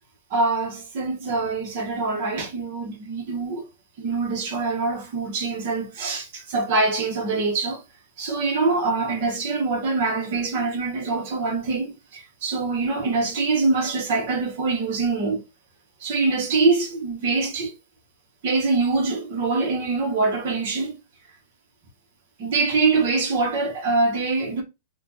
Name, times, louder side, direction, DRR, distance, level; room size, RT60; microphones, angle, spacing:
voice 1, 0.3-3.7 4.0-7.8 8.2-15.4 16.0-17.7 18.4-21.0 22.4-24.6, right 3 dB, 50° right, 1.1 m, -24 dB
4.2 x 2.4 x 2.7 m
supercardioid pair, 160°, 0 cm